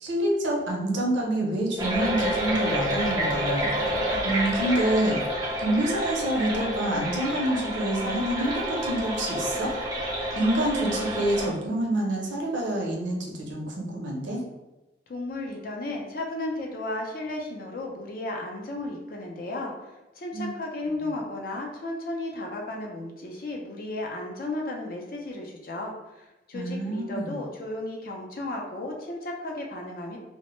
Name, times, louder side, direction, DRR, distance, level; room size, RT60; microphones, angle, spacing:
voice 1, 0.0-3.7 4.2-5.2 5.6-9.7 10.3-14.4 20.3-20.5 26.5-27.3, right 1 dB, 80° right, -1 dB, 0.6 m, -27 dB
sound 1, 1.8-11.5, equal, 20° right, 0.4 m, -29 dB
voice 2, 15.1-30.2, left 2 dB, 50° left, 0 dB, 0.4 m, -34 dB
2.1 x 2.0 x 3.0 m, 1.0 s
head